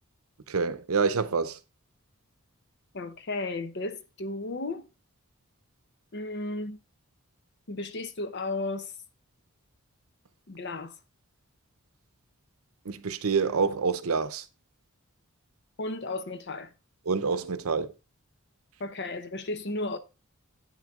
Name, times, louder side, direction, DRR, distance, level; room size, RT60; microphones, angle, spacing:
voice 1, 0.5-1.6 12.8-14.4 17.1-17.9, right 5 dB, 75° right, 0.7 m, -27 dB
voice 2, 2.9-4.9 6.1-6.8 7.7-8.9 10.5-11.0 15.8-16.7 18.8-20.0, left 2 dB, 50° left, 0.8 m, -34 dB
9.1 x 6.3 x 3.6 m
head